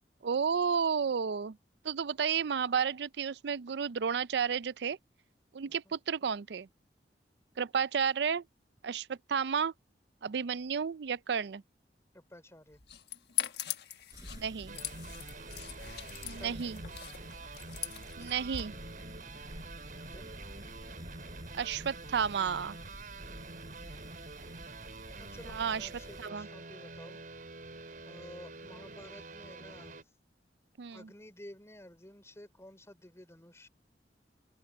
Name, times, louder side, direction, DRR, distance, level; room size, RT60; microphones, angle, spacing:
voice 1, 0.2-1.6 1.8-5.0 5.5-6.7 7.6-8.4 8.8-9.7 10.2-11.6 14.3-14.7 16.2-16.8 18.2-18.7 21.5-22.8 25.5-25.9 26.2-26.5 30.8-31.0, right 6 dB, 65° right, 0.4 m, -32 dB
voice 2, 12.1-12.8 16.4-16.7 20.1-20.3 23.8-24.4 25.2-27.2 28.0-30.1 30.9-33.7, left 1 dB, 15° left, 3.4 m, -52 dB
sound 1, 12.7-18.6, left 11 dB, 65° left, 1.4 m, -41 dB
sound 2, 14.1-26.3, right 1 dB, 20° right, 5.9 m, -50 dB
sound 3, 14.7-30.0, right 3 dB, 50° right, 4.6 m, -47 dB
head